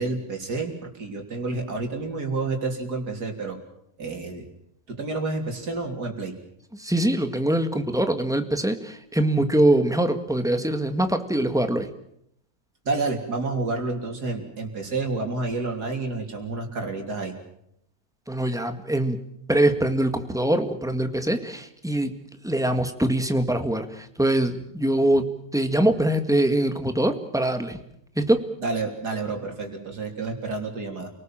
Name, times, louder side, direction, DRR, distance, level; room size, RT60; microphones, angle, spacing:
voice 1, 0.0-3.6 4.0-4.5 4.9-6.4 12.9-17.3 24.5-24.6 28.6-31.1, right 3 dB, 85° right, 3 dB, 3.9 m, -29 dB
voice 2, 6.8-11.9 18.3-19.2 19.5-27.8 28.2-28.4, right 1 dB, ahead, 7 dB, 1.7 m, -23 dB
29.0 x 19.0 x 7.5 m, 0.76 s
omnidirectional pair, 1.7 m